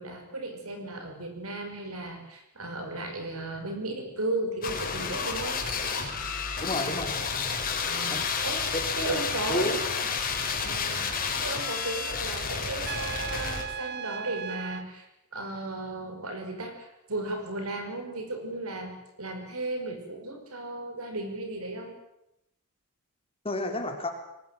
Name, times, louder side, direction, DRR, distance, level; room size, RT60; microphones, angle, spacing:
voice 1, 0.0-5.7 7.8-10.0 10.6-11.0 11.4-15.1 15.3-22.0, right 2 dB, 70° right, 5 dB, 5.7 m, -35 dB
sound 1, 4.6-13.6, left 5 dB, 40° left, 4.9 m, -31 dB
voice 2, 6.6-7.2 8.1-8.3 8.7-8.8 9.1-9.2 9.5-9.8 10.6-10.7 23.4-24.1, left 1 dB, 25° left, 5 dB, 3.6 m, -31 dB
Trumpet, 12.8-14.9, right 8 dB, 45° right, 0.9 m, -37 dB
23.5 x 19.5 x 9.3 m, 0.84 s
head